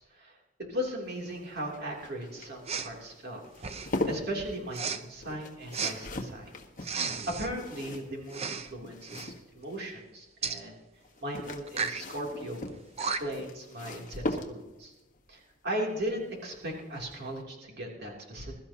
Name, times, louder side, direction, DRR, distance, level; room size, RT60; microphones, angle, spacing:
voice 1, 0.0-3.4 3.8-6.5 6.8-10.8 11.2-12.7 13.0-14.9 15.3-18.5, equal, 55° right, -1 dB, 3.1 m, -37 dB
sound 1, 1.1-9.9 11.0-14.9 16.5-16.9 17.1-17.2, left 1 dB, 40° left, 1.4 m, -40 dB
Respiratory sounds, 2.6-2.9 3.6-4.0 4.7-5.0 5.7-5.9 6.8-7.5 8.3-8.7 9.0-9.3 10.4-10.6 11.7-12.0 12.7-12.8 13.0-13.4, right 5 dB, 30° right, 0.7 m, -33 dB
21.5 x 13.0 x 2.9 m, 1.1 s
head